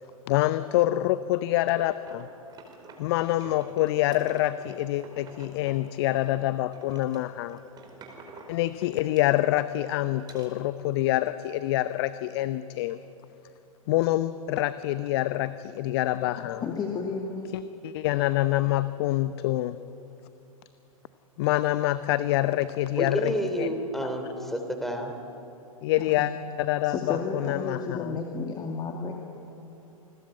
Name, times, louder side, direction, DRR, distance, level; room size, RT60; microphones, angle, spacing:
voice 1, 0.3-2.3 3.0-7.6 8.5-13.0 13.9-16.6 17.5-19.8 21.4-23.7 24.4-24.5 25.8-26.3 26.6-28.2, left 15 dB, 45° left, 13 dB, 0.8 m, -26 dB
sound 1, 2.1-3.1 3.4-6.4 6.7-9.6 10.2-10.5, right 3 dB, 20° right, 4.5 m, -49 dB
voice 2, 16.6-17.5 26.0-26.3 26.8-29.1, left 4 dB, 20° left, 2 dB, 2.2 m, -32 dB
voice 3, 23.0-25.1, equal, ahead, 4 dB, 3.3 m, -30 dB
28.5 x 20.5 x 8.8 m, 2.9 s
figure-of-eight pair, 105°, 18 cm